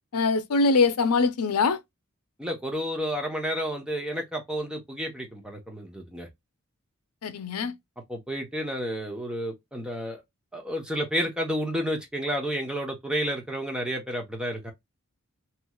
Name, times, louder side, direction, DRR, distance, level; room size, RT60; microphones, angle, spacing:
voice 1, 0.1-1.8 7.2-7.7, left 4 dB, 85° left, 0.6 m, -23 dB
voice 2, 2.4-6.3 8.1-10.2 10.5-14.7, equal, 5° right, 0.9 m, -31 dB
3.1 x 2.9 x 2.3 m
head